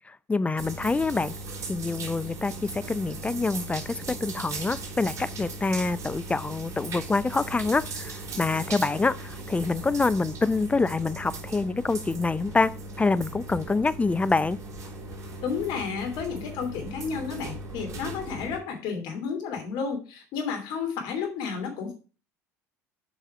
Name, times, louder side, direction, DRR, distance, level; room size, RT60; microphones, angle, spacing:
voice 1, 0.1-1.3 1.7-14.6, left 3 dB, 15° left, 0.6 m, -26 dB
sound 1, 0.6-18.6, right 2 dB, 45° right, 3.5 m, -38 dB
voice 2, 15.4-21.9, left 6 dB, 60° left, 2.9 m, -32 dB
8.1 x 5.6 x 4.7 m
hypercardioid pair, 65°, 8 cm